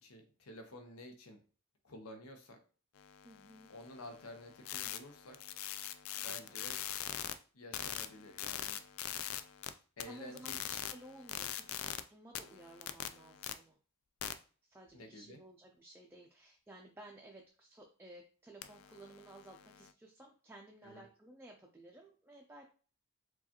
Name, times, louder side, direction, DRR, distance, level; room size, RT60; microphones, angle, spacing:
voice 1, 0.0-1.4 1.8-2.6 3.7-5.4 6.2-6.8 7.5-8.8 10.0-10.6 14.9-15.4 20.8-21.0, left 1 dB, 90° left, 5 dB, 0.8 m, -51 dB
sound 1, 3.0-7.3 7.7-9.7 10.0-12.0 12.3-13.5 14.2-14.3 18.6-19.9, left 11 dB, 70° left, 0.3 m, -43 dB
voice 2, 3.2-3.7 6.2-6.6 10.1-13.8 14.6-22.7, right 1 dB, 10° right, 0 dB, 0.3 m, -55 dB
4.6 x 2.4 x 2.9 m, 0.39 s
head